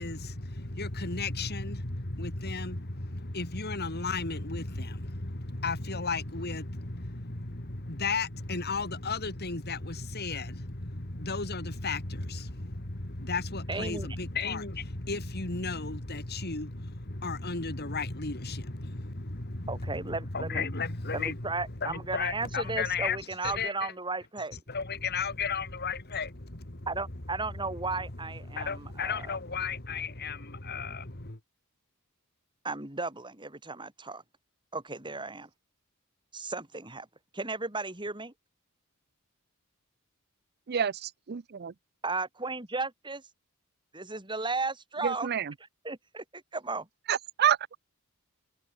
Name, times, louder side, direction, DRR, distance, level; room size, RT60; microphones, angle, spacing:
voice 1, 0.0-23.9 24.5-26.9 27.4-31.4, left 4 dB, 50° left, 2.7 m, -34 dB
voice 2, 13.7-14.1 19.7-20.7 21.1-24.6 26.9-29.3 32.6-34.2 34.7-35.5 36.3-37.1 37.3-38.3 42.0-43.2 43.9-45.3 45.8-46.9, right 3 dB, 20° right, 4.9 m, -35 dB
voice 3, 40.7-41.7 45.0-45.5 47.1-47.8, right 9 dB, 45° right, 0.5 m, -28 dB
head